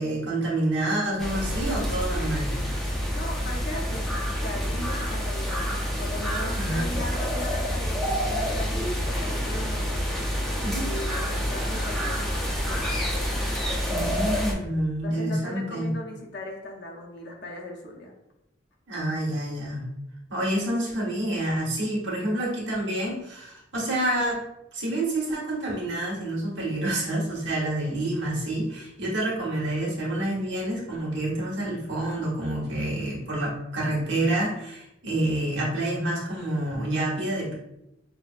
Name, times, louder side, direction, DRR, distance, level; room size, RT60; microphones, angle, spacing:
voice 1, 0.0-2.5 6.6-6.9 10.6-10.9 13.8-15.9 18.9-19.9 20.3-24.5 24.7-37.5, right 1 dB, 65° right, -4 dB, 1.3 m, -28 dB
sound 1, 1.2-14.5, equal, ahead, 0.6 m, -28 dB
voice 2, 3.1-10.0 10.8-13.3 15.0-18.1, left 1 dB, 60° left, -1 dB, 0.7 m, -38 dB
5.9 x 2.1 x 2.5 m, 0.86 s
head